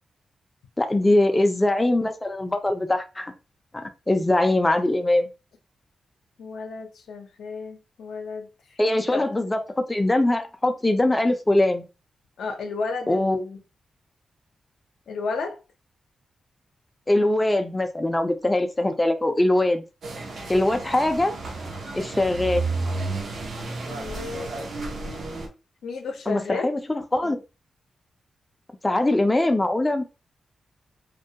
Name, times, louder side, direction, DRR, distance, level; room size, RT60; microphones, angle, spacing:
voice 1, 0.8-3.3 3.7-5.3 8.8-11.8 13.1-13.4 17.1-19.8 20.5-21.3 21.9-22.7 26.3-27.4 28.8-30.0, left 1 dB, 15° left, 0.3 m, -22 dB
voice 2, 6.4-9.3 12.4-13.6 15.1-15.6 23.9-24.6 25.8-26.7, left 4 dB, 85° left, 0.5 m, -33 dB
sound 1, 20.0-25.5, right 3 dB, 70° right, 0.6 m, -32 dB
2.2 x 2.1 x 2.7 m
cardioid pair, 90°, 0 cm